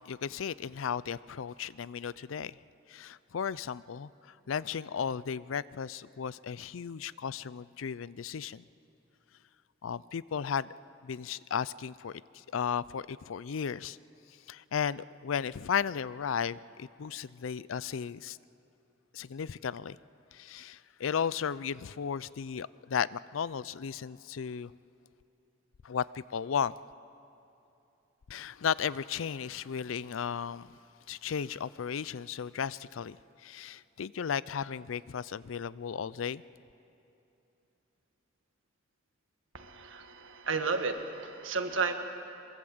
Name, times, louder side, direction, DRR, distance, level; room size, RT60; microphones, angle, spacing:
voice 1, 0.0-2.6 2.9-4.1 4.5-8.6 9.8-10.7 11.0-14.0 14.5-18.4 19.1-20.0 20.3-24.7 25.8-26.8 28.3-30.7 31.1-33.2 33.4-36.4, left 7 dB, 85° left, 19 dB, 0.5 m, -35 dB
voice 2, 39.5-41.9, right 4 dB, 80° right, 6 dB, 1.8 m, -32 dB
23.0 x 22.0 x 7.9 m, 2.9 s
head